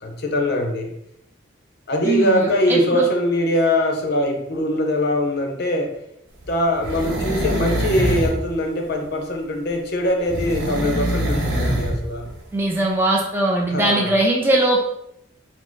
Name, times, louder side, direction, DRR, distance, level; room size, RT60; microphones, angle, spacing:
voice 1, 0.0-0.9 1.9-6.0 6.5-12.3 13.7-14.1, left 1 dB, 55° left, 3 dB, 0.7 m, -22 dB
voice 2, 2.0-3.1 12.5-14.8, right 2 dB, 10° right, -2 dB, 0.5 m, -20 dB
sound 1, 6.4-8.4 10.3-12.0 12.3-12.4, equal, 65° right, 0.9 m, -23 dB
4.3 x 2.0 x 4.5 m, 0.79 s
head